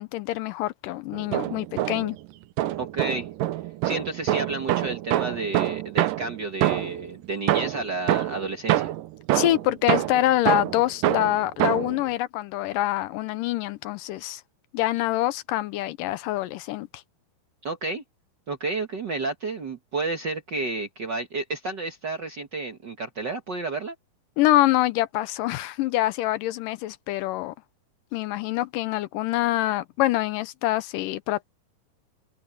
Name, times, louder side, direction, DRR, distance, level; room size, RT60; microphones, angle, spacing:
voice 1, 0.0-2.2 9.3-14.4 14.7-17.0 24.4-27.5 28.1-31.5, left 15 dB, 80° left, 2.2 m, -25 dB
sound 1, 1.1-2.2 2.6-7.1 7.5-12.0, right 14 dB, 75° right, 2.5 m, -26 dB
voice 2, 2.8-3.3 3.8-8.9 17.6-18.0 18.5-23.9, right 3 dB, 50° right, 1.3 m, -31 dB
omnidirectional pair, 4.0 m